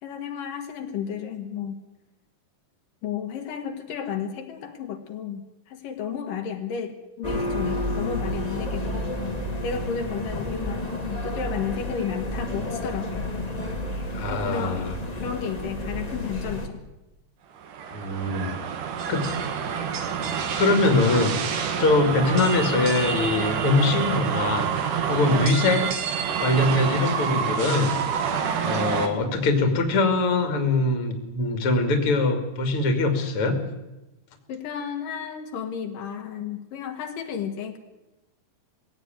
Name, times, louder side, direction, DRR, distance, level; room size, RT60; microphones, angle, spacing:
voice 1, 0.0-1.8 3.0-9.2 9.6-13.3 14.3-14.8 15.2-16.8 25.2-25.5 34.5-37.8, left 7 dB, 80° left, 4 dB, 3.3 m, -33 dB
sound 1, 7.2-16.7, left 1 dB, 15° left, 2.0 m, -30 dB
voice 2, 14.1-14.9 17.9-18.5 19.1-19.3 20.6-21.4 21.8-24.7 25.1-25.9 26.4-33.6, left 2 dB, 45° left, 7 dB, 3.1 m, -23 dB
sound 2, 17.6-29.1, right 7 dB, 70° right, 3.1 m, -27 dB
20.5 x 16.0 x 9.2 m, 1.0 s
omnidirectional pair, 3.9 m